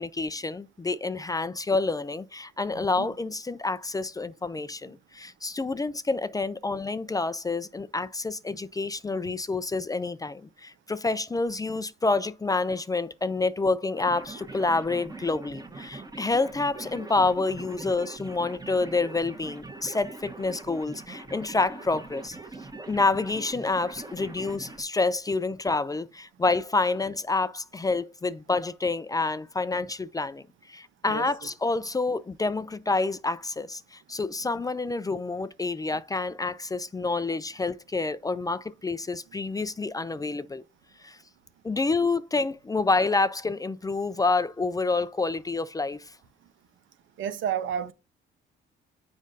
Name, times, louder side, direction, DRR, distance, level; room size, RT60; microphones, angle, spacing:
voice 1, 0.0-22.4 22.9-30.4 30.7-40.6 41.0-41.2 41.6-46.1, left 3 dB, 20° left, 0.4 m, -28 dB
voice 2, 2.7-3.1 31.1-31.3 47.2-47.9, right 8 dB, 75° right, 1.0 m, -31 dB
sound 1, 14.0-24.8, right 2 dB, 20° right, 1.3 m, -42 dB
7.3 x 5.1 x 2.6 m
cardioid pair, 90°, 20 cm